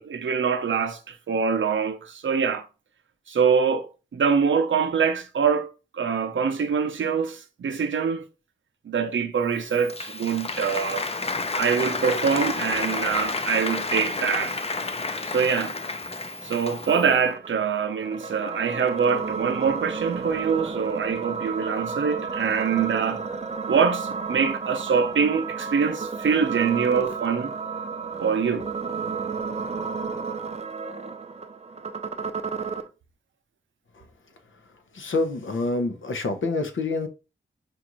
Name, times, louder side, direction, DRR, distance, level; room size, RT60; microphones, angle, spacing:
voice 1, 0.0-2.7 3.3-5.7 5.9-8.3 8.8-11.1 11.6-14.6 15.3-15.8 16.4-23.2 23.7-27.5 28.2-28.7, right 6 dB, 80° right, 0.6 m, -24 dB
Applause, 9.5-17.1, left 3 dB, 30° left, 0.5 m, -30 dB
sound 1, 16.9-32.9, right 5 dB, 35° right, 0.5 m, -32 dB
voice 2, 34.9-37.1, left 3 dB, 80° left, 0.8 m, -27 dB
5.1 x 2.5 x 3.0 m
wide cardioid pair, 95°, 20 cm